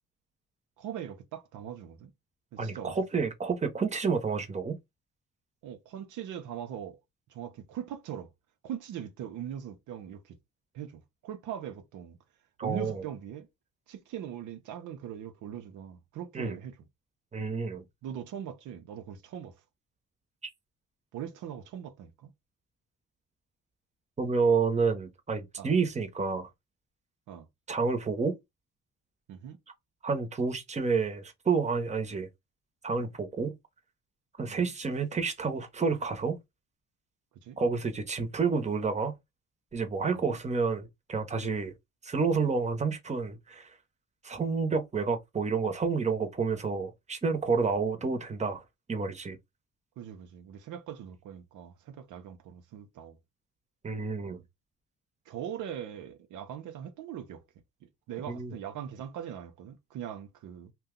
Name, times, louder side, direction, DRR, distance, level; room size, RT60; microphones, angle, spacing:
voice 1, 0.8-2.1 2.5-3.0 5.6-7.0 7.3-8.3 8.6-10.4 10.7-12.2 12.6-13.5 13.9-16.8 18.0-19.6 21.1-22.3 25.6-25.7 27.3-27.5 29.3-29.6 34.5-34.7 37.3-37.6 40.1-40.4 50.0-53.2 54.3-54.4 55.3-57.4 57.8-60.7, right 9 dB, 80° right, 0.7 m, -41 dB
voice 2, 2.6-4.8 12.6-13.0 16.3-16.6 17.3-17.8 24.2-26.5 27.7-28.4 30.0-32.3 32.8-33.6 34.4-36.4 37.6-39.1 39.7-41.7 42.0-43.7 44.2-48.6 48.9-49.4 53.8-54.4 58.3-58.6, right 5 dB, 25° right, 0.8 m, -29 dB
2.7 x 2.2 x 3.6 m
cardioid pair, 90°, 30 cm